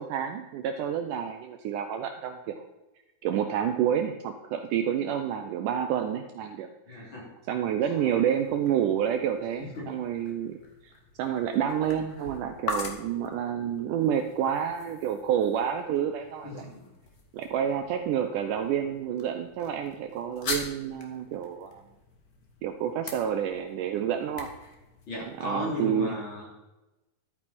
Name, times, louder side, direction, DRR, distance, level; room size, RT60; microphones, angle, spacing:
voice 1, 0.0-2.6 3.2-7.0 7.5-10.6 10.8-10.9 11.2-16.6 17.3-21.8 22.6-24.5 25.4-26.2, right 9 dB, 75° right, 6 dB, 2.0 m, -29 dB
voice 2, 6.9-7.3 7.9-8.1 9.8-9.9 16.4-16.8 25.1-26.5, left 1 dB, 35° left, -4 dB, 3.8 m, -35 dB
sound 1, 8.0-25.8, left 3 dB, 65° left, 0.9 m, -43 dB
12.0 x 9.0 x 4.3 m, 1.0 s
omnidirectional pair, 4.1 m